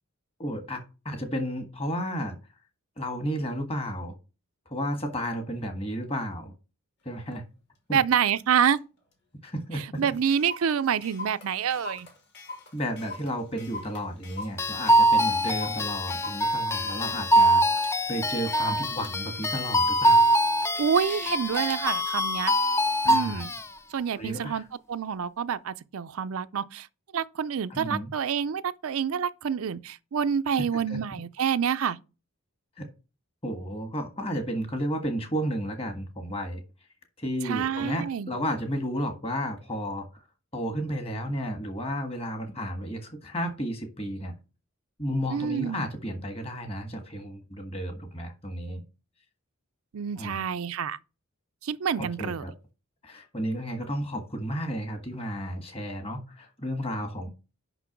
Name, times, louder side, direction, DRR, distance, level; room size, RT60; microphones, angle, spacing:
voice 1, 0.4-2.4 3.0-4.1 4.7-6.5 7.0-7.4 7.9-8.0 9.4-9.8 12.7-20.3 23.0-23.4 24.2-24.6 27.7-28.1 30.7-31.0 32.8-32.9 33.4-36.6 37.2-40.0 40.5-44.3 45.0-48.8 50.2-50.4 52.0-52.5 53.0-57.3, equal, 25° left, 1.5 m, -32 dB
Clock, 7.3-7.4 8.0-8.2 8.8-8.9 9.1-9.2 9.6-9.7 9.9-17.9 18.4-21.8, left 3 dB, 50° left, 2.3 m, -42 dB
voice 2, 7.9-8.8 10.0-12.1 20.8-22.5 23.1-23.5 23.9-26.9 27.1-32.0 37.4-38.3 45.3-45.9 49.9-51.0 51.6-52.4, right 7 dB, 70° right, 0.5 m, -27 dB
sound 1, 14.6-23.7, right 1 dB, 10° left, 0.3 m, -24 dB
5.9 x 5.7 x 5.9 m
head